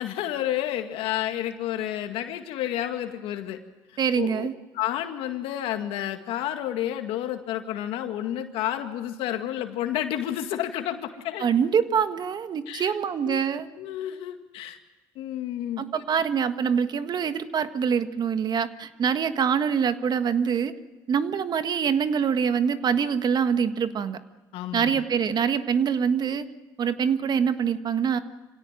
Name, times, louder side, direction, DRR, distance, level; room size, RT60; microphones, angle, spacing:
voice 1, 0.0-3.6 4.2-4.5 4.7-11.4 12.7-12.9 13.2-13.4 13.8-14.8 15.2-16.0 24.5-25.0, left 12 dB, 75° left, 6 dB, 2.0 m, -30 dB
voice 2, 4.0-4.5 11.4-13.7 15.8-20.7 21.1-24.2 24.7-26.5 26.8-28.2, right 7 dB, 45° right, 10 dB, 1.6 m, -24 dB
26.0 x 17.0 x 9.1 m, 1.2 s
supercardioid pair, 75°, 10 cm